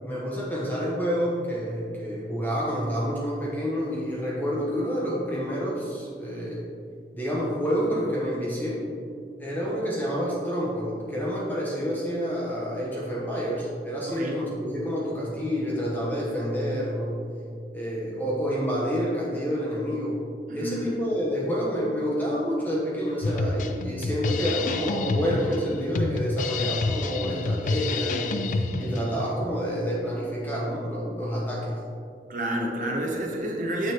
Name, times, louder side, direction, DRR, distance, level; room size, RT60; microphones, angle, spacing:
voice 1, 0.0-6.7 7.1-8.8 9.4-17.2 17.7-20.2 20.5-31.8, equal, 10° left, -5 dB, 0.9 m, -28 dB
voice 2, 14.1-14.4 20.5-20.9 32.3-33.9, right 1 dB, 45° right, 0 dB, 0.7 m, -29 dB
Drum kit, 23.2-29.2, left 3 dB, 45° left, 0.3 m, -28 dB
6.7 x 6.3 x 2.9 m, 2.3 s
head